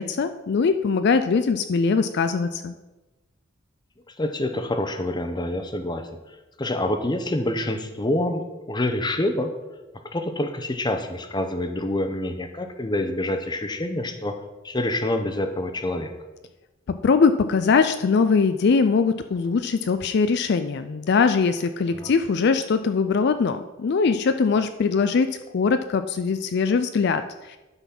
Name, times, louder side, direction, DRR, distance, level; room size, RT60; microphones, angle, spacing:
voice 1, 0.0-2.7 16.9-27.6, left 5 dB, 55° left, 10 dB, 0.4 m, -21 dB
voice 2, 4.2-6.1 6.6-9.5 10.0-14.4 14.6-16.1 21.9-22.1, left 1 dB, 20° left, 7 dB, 0.7 m, -26 dB
11.5 x 4.1 x 5.9 m, 1.1 s
head